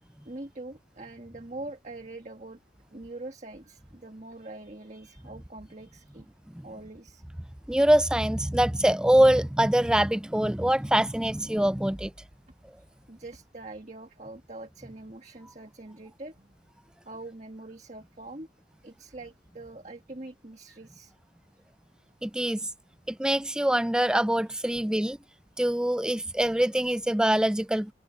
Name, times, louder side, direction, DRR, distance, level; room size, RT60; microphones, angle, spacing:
voice 1, 0.0-2.6 2.9-6.3 6.6-7.2 13.1-16.5 17.1-18.5 18.8-21.1, right 2 dB, 40° right, 1.7 m, -43 dB
voice 2, 7.7-12.1 22.2-22.7 23.1-25.2 25.6-27.9, right 1 dB, 5° right, 0.3 m, -24 dB
head